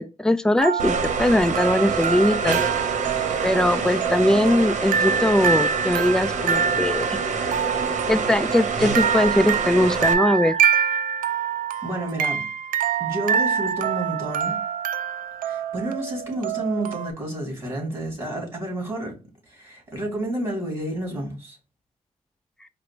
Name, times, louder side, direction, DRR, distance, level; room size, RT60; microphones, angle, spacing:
voice 1, 0.0-2.6 3.4-7.2 8.1-10.6, left 1 dB, 5° left, 0.4 m, -21 dB
sound 1, 0.6-17.1, right 7 dB, 90° right, 0.4 m, -26 dB
sound 2, 0.8-10.1, right 4 dB, 60° right, 0.9 m, -26 dB
voice 2, 11.8-12.5 13.0-14.6 15.4-19.2 19.5-21.6, right 1 dB, 20° right, 2.6 m, -30 dB
4.8 x 2.0 x 4.4 m
cardioid pair, 100°, 14 cm